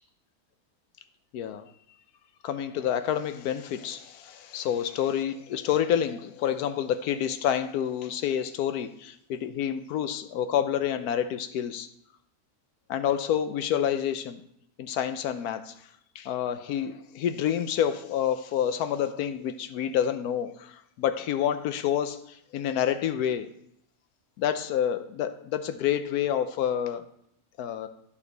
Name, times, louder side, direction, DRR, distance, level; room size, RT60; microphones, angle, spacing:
voice 1, 1.3-1.6 2.4-11.9 12.9-14.4 14.8-15.7 16.1-23.5 24.4-27.0 27.6-27.9, left 9 dB, 85° left, 10 dB, 1.2 m, -28 dB
11.5 x 5.6 x 4.0 m, 0.73 s
omnidirectional pair, 1.6 m